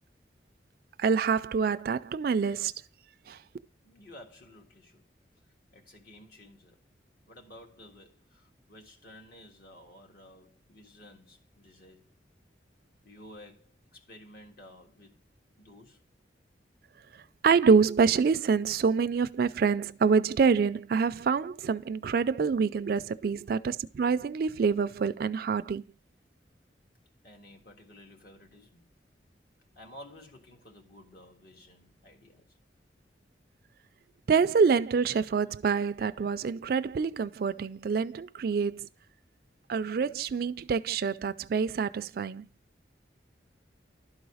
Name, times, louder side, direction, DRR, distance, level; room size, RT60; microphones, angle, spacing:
voice 1, 1.0-2.7 3.3-3.4 17.4-25.8 34.3-38.9 39.7-42.5, right 5 dB, 55° right, 0.3 m, -26 dB
voice 2, 3.8-5.1 5.7-6.9 7.3-12.1 13.0-15.2 15.6-16.0 27.2-28.9 29.7-32.6, left 1 dB, 55° left, 1.6 m, -53 dB
12.0 x 4.0 x 4.8 m
head